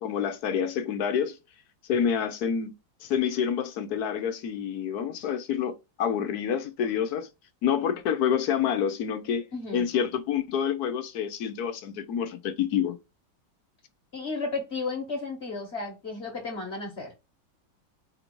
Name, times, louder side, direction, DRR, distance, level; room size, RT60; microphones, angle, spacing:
voice 1, 0.0-1.4 1.9-2.7 3.0-7.3 7.6-9.5 9.7-13.0, left 8 dB, 70° left, 1.0 m, -28 dB
voice 2, 9.5-9.8 14.1-17.1, left 3 dB, 40° left, 1.2 m, -33 dB
4.4 x 2.7 x 4.3 m
omnidirectional pair, 2.1 m